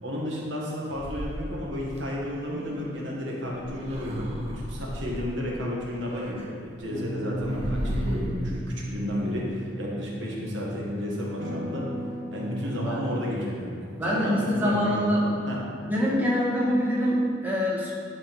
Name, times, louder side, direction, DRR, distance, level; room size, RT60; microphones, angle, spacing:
voice 1, 0.0-11.9 12.3-15.6, left 1 dB, 85° right, -4 dB, 1.8 m, -32 dB
sound 1, 0.9-2.0 3.5-5.3 6.1-6.5 6.8-6.9 7.2-8.5, equal, 35° right, 1.0 m, -33 dB
sound 2, 2.5-6.2 6.9-10.9 11.4-14.8, right 1 dB, 70° right, 1.4 m, -38 dB
voice 2, 12.4-13.3 14.0-15.2 15.8-17.9, equal, 10° right, -6 dB, 1.7 m, -25 dB
10.5 x 4.2 x 5.4 m, 2.2 s
head